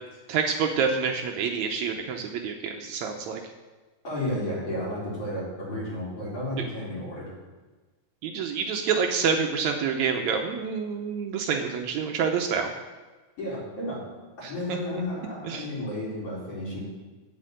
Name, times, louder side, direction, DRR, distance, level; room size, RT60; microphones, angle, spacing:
voice 1, 0.3-3.4 8.2-12.7 14.4-14.8 15.5-15.6, right 6 dB, 75° right, 4 dB, 2.0 m, -27 dB
voice 2, 4.0-7.3 13.4-14.0 14.4-16.8, left 1 dB, 50° left, -8 dB, 5.5 m, -32 dB
8.4 x 7.8 x 7.8 m, 1.3 s
omnidirectional pair, 3.5 m